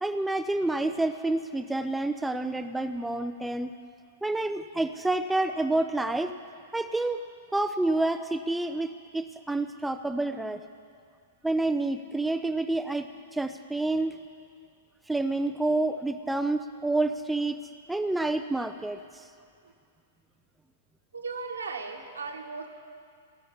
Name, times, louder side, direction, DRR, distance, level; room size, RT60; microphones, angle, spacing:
voice 1, 0.0-3.7 4.2-6.3 6.7-7.2 7.5-10.6 11.4-13.1 13.3-14.2 15.1-17.6 17.9-19.0, right 2 dB, 5° right, 8 dB, 0.5 m, -28 dB
voice 2, 0.6-0.9 21.1-22.7, right 4 dB, 75° right, 3 dB, 1.5 m, -37 dB
18.0 x 7.1 x 10.0 m, 2.3 s
figure-of-eight pair, 105°, 0 cm